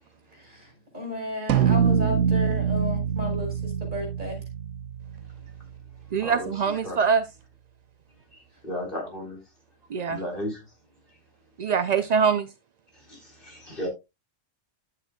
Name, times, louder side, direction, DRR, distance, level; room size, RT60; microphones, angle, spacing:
voice 1, 0.3-4.4, left 2 dB, 40° right, 5.4 m, -34 dB
sound 1, 1.5-6.1, right 7 dB, 75° right, 0.9 m, -25 dB
voice 2, 6.1-7.2 9.9-10.2 11.6-12.5, right 6 dB, 55° right, 0.4 m, -23 dB
voice 3, 8.3-9.4 10.1-10.6 11.6-11.7 12.9-13.9, equal, 45° left, 4.1 m, -35 dB
11.0 x 9.0 x 2.3 m
omnidirectional pair, 1.3 m